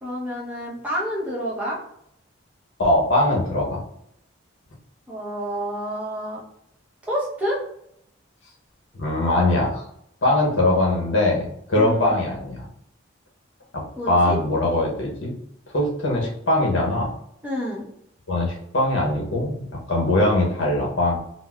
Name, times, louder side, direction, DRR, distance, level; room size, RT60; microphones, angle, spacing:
voice 1, 0.0-1.8 5.1-6.4 7.1-7.6 11.7-12.1 14.0-14.4 17.4-17.9, equal, 5° right, -6 dB, 0.7 m, -28 dB
voice 2, 2.8-3.8 8.9-9.8 10.2-12.7 13.7-15.3 15.7-17.1 18.3-21.2, left 1 dB, 70° left, -1 dB, 0.8 m, -21 dB
3.9 x 2.0 x 2.3 m, 0.73 s
head